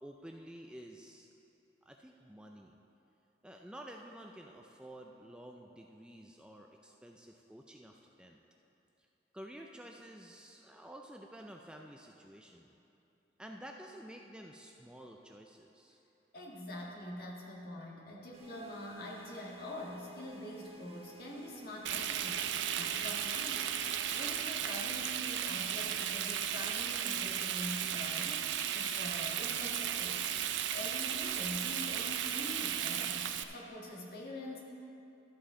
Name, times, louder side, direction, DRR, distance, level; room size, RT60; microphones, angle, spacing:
voice 1, 0.0-1.3 1.9-2.7 3.4-8.4 9.3-12.7 13.4-16.0, right 1 dB, 5° right, 1 dB, 0.4 m, -51 dB
voice 2, 16.3-23.8 24.1-30.3 30.7-34.6, left 1 dB, 55° left, -3 dB, 1.8 m, -44 dB
sound 1, 18.3-24.5, right 5 dB, 30° right, 0.9 m, -55 dB
Frying (food), 21.9-33.4, right 9 dB, 75° right, 0.4 m, -35 dB
13.0 x 8.3 x 3.7 m, 2.9 s
head